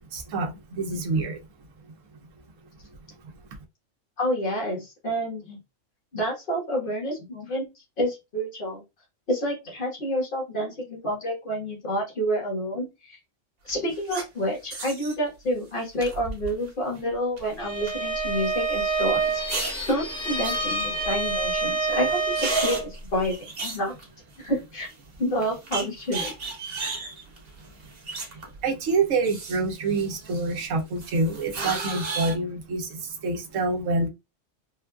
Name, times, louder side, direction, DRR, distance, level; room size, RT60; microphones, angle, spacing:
voice 1, 0.1-1.4 3.2-3.3 28.4-34.1, right 3 dB, 85° right, 1.1 m, -27 dB
voice 2, 4.2-5.6 6.1-7.7 8.0-8.8 9.3-13.2 13.6-19.6 19.9-23.9 24.4-24.9 25.2-26.3 26.8-27.1, equal, 45° left, 1.5 m, -29 dB
sound 1, 13.7-14.2 14.7-15.1 16.0-16.7 17.0-17.4 17.9-18.0 19.2-19.9 20.4-21.3 21.6-21.7 22.0-24.5 24.9-25.0 25.4-28.6 28.9-30.6 31.0-32.4, right 3 dB, 50° right, 1.1 m, -34 dB
Bowed string instrument, 17.6-22.9, right 3 dB, 5° left, 0.6 m, -27 dB
3.6 x 2.4 x 2.3 m
omnidirectional pair, 1.3 m